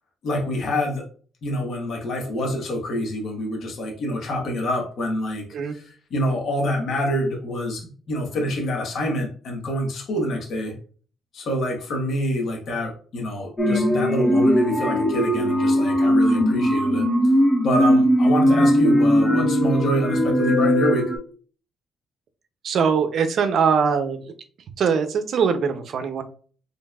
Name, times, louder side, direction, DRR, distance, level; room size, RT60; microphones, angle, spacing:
voice 1, 0.2-1.1 1.4-5.4 5.7-10.7 11.3-17.1 17.6-21.1, equal, 65° left, 0 dB, 1.3 m, -26 dB
sound 1, 13.6-21.2, equal, 20° left, 0.9 m, -19 dB
voice 2, 22.6-24.3 24.8-26.2, right 6 dB, 65° right, 8 dB, 0.6 m, -22 dB
4.4 x 3.3 x 2.4 m, 0.42 s
cardioid pair, 90°, 0 cm